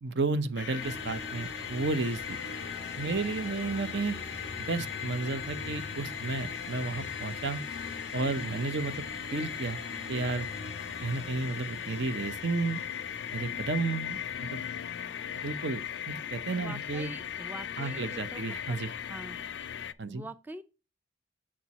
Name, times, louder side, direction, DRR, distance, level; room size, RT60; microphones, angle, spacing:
voice 1, 0.0-2.4 3.0-4.1 4.6-7.6 8.1-9.1 9.3-9.8 10.1-10.5 11.0-12.8 13.3-14.6 15.4-17.1 17.8-18.9 20.0-20.2, right 3 dB, 65° right, 0.6 m, -32 dB
sound 1, 0.6-19.9, left 9 dB, 65° left, 0.4 m, -38 dB
sound 2, 0.8-19.9, right 1 dB, 30° right, 0.9 m, -47 dB
voice 2, 16.5-18.8 19.1-19.4 20.1-20.6, right 1 dB, 10° right, 0.4 m, -44 dB
7.3 x 4.5 x 4.0 m
head